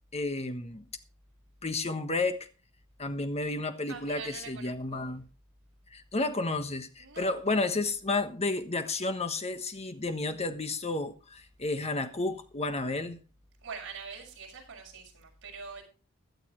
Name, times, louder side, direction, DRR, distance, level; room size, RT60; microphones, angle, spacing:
voice 1, 0.1-0.8 1.6-2.5 3.0-5.2 5.9-13.2, left 2 dB, 30° left, 1.4 m, -31 dB
voice 2, 3.9-5.1 7.0-7.4 13.6-15.8, right 5 dB, 60° right, 6.1 m, -44 dB
16.0 x 12.0 x 3.2 m
head